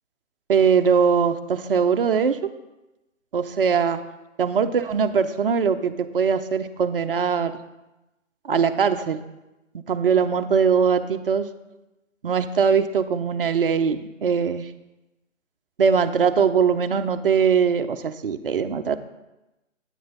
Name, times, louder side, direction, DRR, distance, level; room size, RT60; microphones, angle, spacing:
voice 1, 0.5-2.4 3.3-4.0 4.4-7.5 8.4-9.2 9.9-11.5 12.2-14.7 15.8-19.0, right 6 dB, 45° right, 8 dB, 0.6 m, -21 dB
9.2 x 8.8 x 4.0 m, 1.0 s
hypercardioid pair, 155°, 40 cm